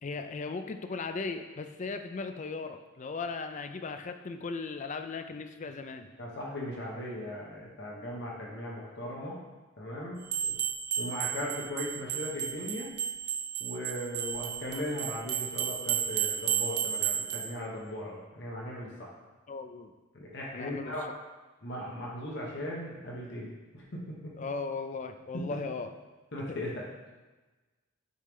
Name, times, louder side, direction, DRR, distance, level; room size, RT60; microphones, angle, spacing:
voice 1, 0.0-6.1 19.5-19.9 20.5-20.9 24.4-25.9, left 4 dB, 35° left, 7 dB, 0.4 m, -37 dB
voice 2, 6.2-9.4 9.8-10.2 11.0-12.9 13.6-19.1 20.1-21.1 21.6-24.0 25.3-25.6 26.3-26.8, left 1 dB, 55° left, -4 dB, 1.2 m, -38 dB
sound 1, 10.3-17.5, right 9 dB, 50° right, 0.5 m, -33 dB
6.7 x 3.2 x 5.2 m, 1.2 s
head